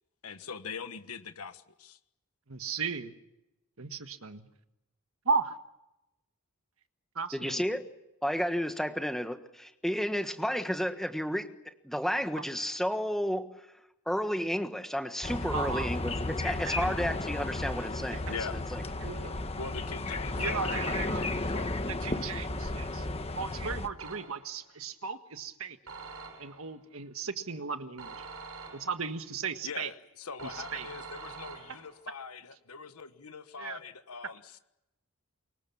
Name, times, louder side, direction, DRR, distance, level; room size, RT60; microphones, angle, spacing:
voice 1, 0.2-2.0 18.3-18.6 19.6-22.2 29.6-34.6, left 5 dB, 85° left, 10 dB, 1.4 m, -42 dB
voice 2, 2.5-3.1 3.8-4.5 5.2-5.6 7.1-7.6 12.3-12.4 15.5-15.9 18.1-18.2 19.0-19.4 20.3-21.3 21.9-23.1 23.3-25.8 26.4-28.3 28.7-29.9 30.4-30.9 33.6-33.8, right 5 dB, 65° right, 8 dB, 1.6 m, -35 dB
voice 3, 7.3-7.8 8.2-11.5 11.8-13.5 14.1-18.3 18.7-18.8, equal, ahead, 7 dB, 1.4 m, -32 dB
sound 1, 15.2-23.9, left 2 dB, 30° left, 1.3 m, -33 dB
sound 2, 24.0-24.7 25.9-26.8 28.0-29.2 30.4-32.0, right 4 dB, 85° right, 6.0 m, -45 dB
25.5 x 23.0 x 7.2 m, 0.91 s
head